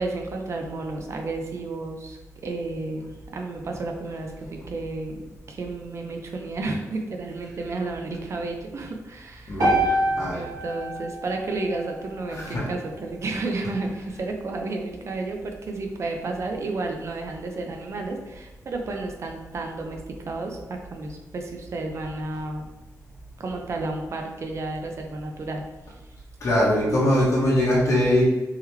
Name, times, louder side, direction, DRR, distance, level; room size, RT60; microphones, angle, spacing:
voice 1, 0.0-9.7 10.3-22.7 23.4-25.6, right 2 dB, 50° right, 3 dB, 0.6 m, -32 dB
voice 2, 9.5-10.4 12.3-12.7 26.4-28.3, left 1 dB, 55° left, -7 dB, 1.1 m, -22 dB
sound 1, 9.6-13.8, right 1 dB, 80° right, 1.4 m, -28 dB
3.6 x 3.1 x 3.3 m, 1.2 s
wide cardioid pair, 130°, 6 cm